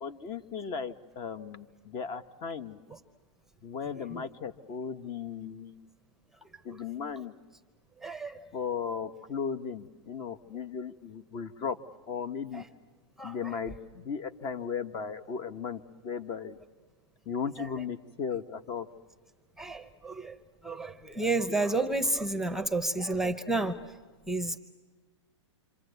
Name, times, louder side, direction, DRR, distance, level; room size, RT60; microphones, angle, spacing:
voice 1, 0.0-2.8 3.6-5.8 6.6-7.3 8.5-11.8 12.1-12.6 13.2-16.6 17.3-18.9, left 6 dB, 30° left, 12 dB, 1.0 m, -36 dB
voice 2, 4.0-4.3 6.4-6.8 8.0-8.5 12.5-12.7 13.2-13.6 17.6-17.7 19.6-20.4 20.6-23.9 24.3-24.6, right 2 dB, 5° right, 9 dB, 0.8 m, -31 dB
27.0 x 26.5 x 8.1 m, 1.3 s
hypercardioid pair, 140°, 15 cm